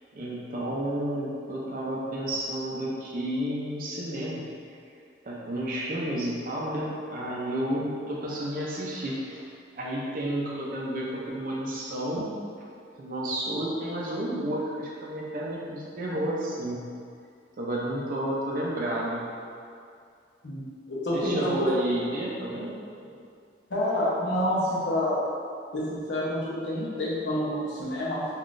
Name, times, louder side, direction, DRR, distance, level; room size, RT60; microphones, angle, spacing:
voice 1, 0.1-4.5 5.2-9.4 9.7-12.3 13.0-16.9 17.6-19.3 21.1-22.7 23.0-23.2, right 1 dB, 50° right, -5 dB, 0.4 m, -31 dB
voice 2, 20.4-21.7 23.7-25.2 25.7-28.2, left 1 dB, 70° left, -6 dB, 0.7 m, -28 dB
3.7 x 2.3 x 2.5 m, 2.3 s
head